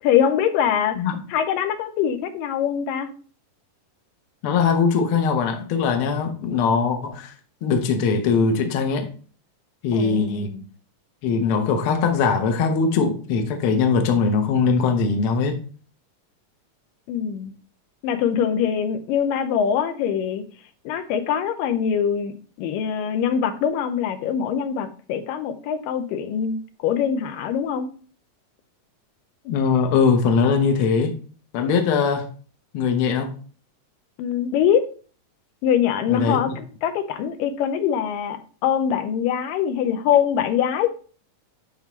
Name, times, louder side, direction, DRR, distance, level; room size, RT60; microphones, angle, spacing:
voice 1, 0.0-1.0 1.3-3.1 9.9-10.6 17.1-17.5 18.0-20.4 20.9-27.9 34.2-34.8 35.6-40.9, left 8 dB, 90° left, 2.4 m, -23 dB
voice 2, 4.4-7.3 7.6-9.1 9.8-10.6 11.2-15.5 29.4-31.1 31.5-32.3 32.7-33.3 36.1-36.4, left 5 dB, 70° left, 1.3 m, -21 dB
11.0 x 3.7 x 3.0 m
omnidirectional pair, 3.9 m